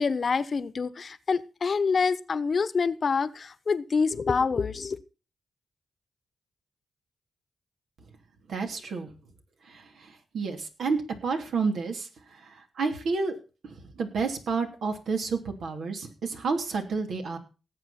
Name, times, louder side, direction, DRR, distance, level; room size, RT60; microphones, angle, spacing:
voice 1, 0.0-5.0, left 5 dB, 50° left, 16 dB, 1.0 m, -26 dB
voice 2, 8.5-9.1 10.3-12.1 12.8-13.3 14.0-17.4, right 4 dB, 80° right, 4 dB, 3.1 m, -29 dB
18.5 x 8.0 x 4.3 m, 0.34 s
cardioid pair, 75°, 0 cm